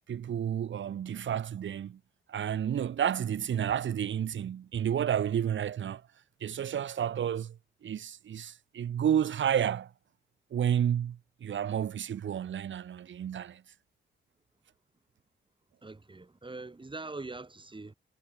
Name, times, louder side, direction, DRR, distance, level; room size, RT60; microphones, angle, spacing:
voice 1, 0.1-2.0 2.3-6.0 6.4-7.6 7.8-9.9 10.5-13.6, right 9 dB, 75° right, 2.2 m, -31 dB
voice 2, 15.8-17.9, right 3 dB, 25° right, 6.1 m, -42 dB
cardioid pair, 75°, 20 cm